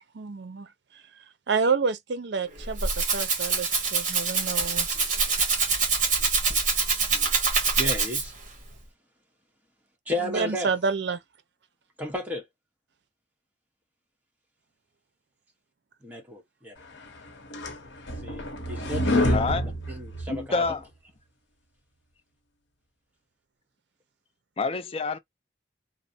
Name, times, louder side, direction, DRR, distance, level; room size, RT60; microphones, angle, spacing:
voice 1, 0.1-0.7 1.5-4.9 10.2-11.2, right 5 dB, 65° right, 0.5 m, -28 dB
Rattle (instrument), 2.5-8.5, right 4 dB, 45° right, 1.1 m, -25 dB
voice 2, 7.8-8.3 10.1-10.7 12.0-12.4 16.0-16.7 18.2-19.4 19.9-20.6, left 1 dB, 10° right, 1.0 m, -33 dB
sound 1, 17.1-20.7, left 1 dB, 85° left, 0.8 m, -27 dB
voice 3, 19.3-19.7 20.3-20.9 24.6-25.2, left 4 dB, 30° left, 0.4 m, -27 dB
3.0 x 2.0 x 2.6 m
head